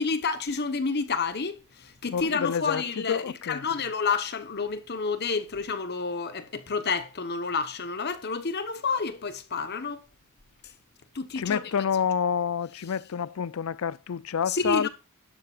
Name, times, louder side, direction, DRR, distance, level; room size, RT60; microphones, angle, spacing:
voice 1, 0.0-10.0 11.1-11.6 14.5-14.9, left 4 dB, 50° left, 1.1 m, -29 dB
voice 2, 2.1-3.6 11.4-14.9, left 7 dB, 65° left, 0.4 m, -28 dB
11.5 x 11.5 x 2.5 m
head